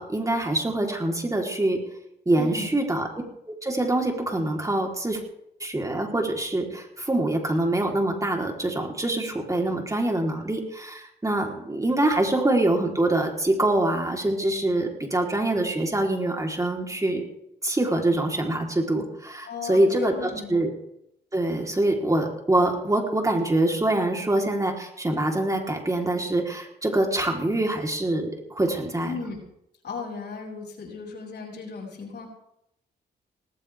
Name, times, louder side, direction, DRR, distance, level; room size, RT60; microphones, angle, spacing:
voice 1, 0.0-1.8 2.3-3.1 3.5-5.2 5.6-17.2 17.6-20.7 21.3-29.1, right 1 dB, 20° right, 1 dB, 3.8 m, -25 dB
voice 2, 2.4-2.7 19.4-20.6 29.0-29.4 29.8-32.3, left 4 dB, 70° left, -1 dB, 7.5 m, -36 dB
19.0 x 17.5 x 3.6 m, 0.78 s
cardioid pair, 70°, 18 cm